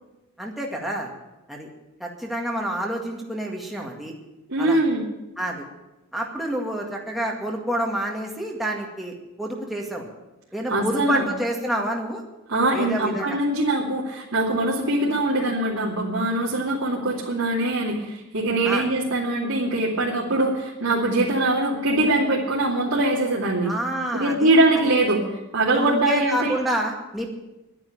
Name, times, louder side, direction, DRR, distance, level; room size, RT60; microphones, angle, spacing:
voice 1, 0.4-1.1 1.5-1.7 2.0-4.1 4.6-4.8 5.4-5.7 6.1-10.1 10.5-12.2 12.7-13.4 18.6-18.9 23.6-24.5 25.7-27.3, right 1 dB, ahead, -2 dB, 1.9 m, -28 dB
voice 2, 4.5-5.0 10.7-11.3 12.5-23.7 24.1-26.6, right 2 dB, 75° right, -5 dB, 2.7 m, -22 dB
11.0 x 9.9 x 9.9 m, 0.99 s
head